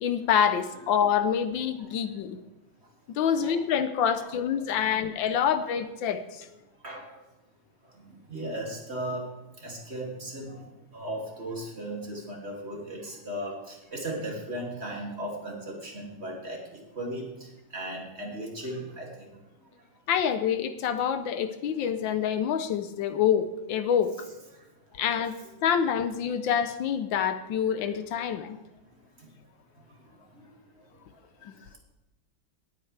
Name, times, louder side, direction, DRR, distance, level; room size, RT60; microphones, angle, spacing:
voice 1, 0.0-2.4 3.1-6.5 20.1-24.1 25.0-28.6 31.4-31.6, left 8 dB, 85° left, 10 dB, 1.6 m, -26 dB
voice 2, 2.7-3.6 4.2-4.3 4.7-4.9 6.8-7.3 7.8-20.0 21.9-22.0 24.5-25.0 28.8-29.5 29.7-31.8, right 1 dB, 35° right, -1 dB, 2.8 m, -38 dB
18.5 x 9.0 x 3.3 m, 1.0 s
omnidirectional pair, 2.1 m